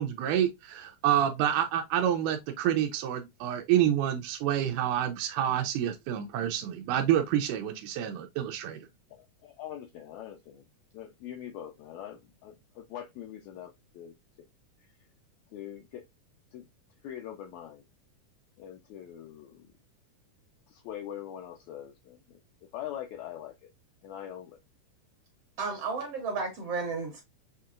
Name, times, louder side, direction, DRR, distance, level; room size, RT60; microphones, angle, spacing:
voice 1, 0.0-8.8, right 10 dB, 85° right, 2.2 m, -28 dB
voice 2, 9.1-10.6 10.9-14.1 14.8-14.9 15.5-16.0 16.5-16.7 17.0-17.8 18.6-19.7 20.7-22.4 22.7-23.7 24.0-24.6, left 10 dB, 80° left, 1.8 m, -43 dB
voice 3, 25.6-27.2, right 4 dB, 60° right, 1.8 m, -33 dB
6.5 x 2.8 x 2.4 m
omnidirectional pair, 3.6 m